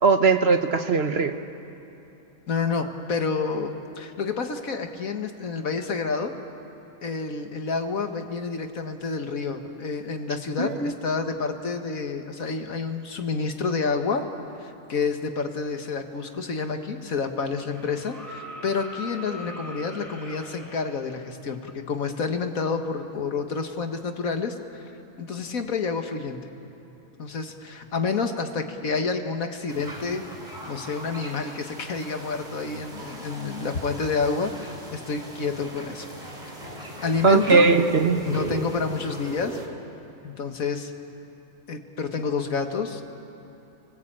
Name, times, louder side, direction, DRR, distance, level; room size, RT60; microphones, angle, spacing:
voice 1, 0.0-1.3 10.6-10.9 37.2-38.2, right 4 dB, 50° right, 7 dB, 1.2 m, -19 dB
voice 2, 2.5-6.3 7.0-14.2 14.6-24.8 25.2-26.4 27.2-30.2 30.7-36.1 37.0-37.7 38.3-39.6 40.2-40.9 41.7-43.0, left 4 dB, 75° left, 5 dB, 2.0 m, -29 dB
sound 1, 16.5-16.6 17.6-20.8 22.6-22.7, equal, ahead, 4.6 m, -41 dB
sound 2, 29.7-39.7, right 1 dB, 30° right, 3.3 m, -38 dB
29.5 x 20.0 x 8.8 m, 2.8 s
omnidirectional pair, 1.5 m